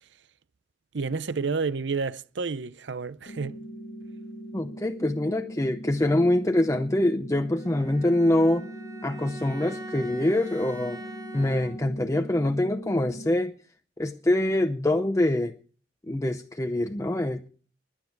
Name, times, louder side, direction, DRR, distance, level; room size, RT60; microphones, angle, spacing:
voice 1, 0.9-3.6, right 4 dB, 75° right, 0.7 m, -30 dB
sound 1, 3.3-13.3, right 1 dB, 50° left, 1.6 m, -41 dB
voice 2, 4.5-8.7 9.0-11.0 11.3-13.5 14.0-15.5 16.1-17.5, left 1 dB, 15° left, 0.6 m, -25 dB
Bowed string instrument, 7.6-12.1, right 1 dB, 20° right, 3.5 m, -43 dB
21.5 x 9.1 x 4.7 m
head